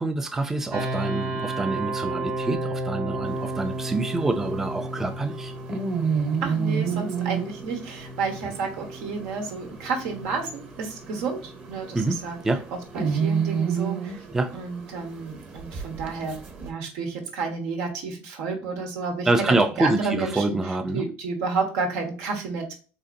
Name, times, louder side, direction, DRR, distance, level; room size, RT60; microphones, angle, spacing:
voice 1, 0.0-5.5 11.9-12.6 14.3-14.5 19.3-21.1, right 2 dB, 10° right, 0.3 m, -26 dB
sound 1, 0.7-13.5, right 2 dB, 60° right, 0.8 m, -34 dB
dog snoring, 3.3-16.7, right 6 dB, 35° right, 1.0 m, -31 dB
voice 2, 6.4-12.4 12.7-14.2 14.5-20.6 20.9-22.7, right 4 dB, 85° right, 1.1 m, -31 dB
3.9 x 2.8 x 2.5 m
cardioid pair, 155°, 4 cm